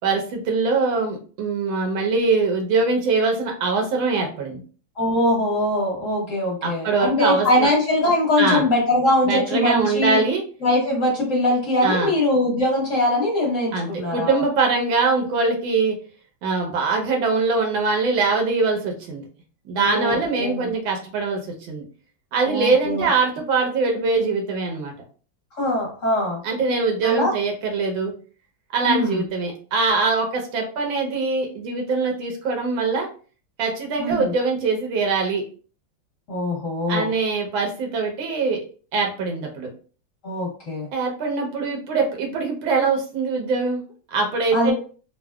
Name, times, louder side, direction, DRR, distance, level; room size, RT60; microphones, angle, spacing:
voice 1, 0.0-4.6 6.6-7.7 8.4-8.6 9.2-10.4 11.8-12.1 13.7-16.0 16.4-19.3 19.7-21.8 22.3-24.9 26.4-28.1 28.7-33.1 33.6-35.4 36.9-38.6 38.9-39.7 40.9-43.8 44.1-44.7, right 4 dB, 90° right, 2 dB, 1.6 m, -22 dB
voice 2, 5.0-10.2 10.6-14.4 19.8-20.6 22.4-23.1 25.5-26.4 27.0-27.3 28.8-29.2 34.0-34.3 36.3-37.1 40.2-40.9 44.5-44.7, left 1 dB, 50° left, -3 dB, 1.2 m, -22 dB
3.8 x 2.1 x 2.2 m, 0.39 s
omnidirectional pair, 2.1 m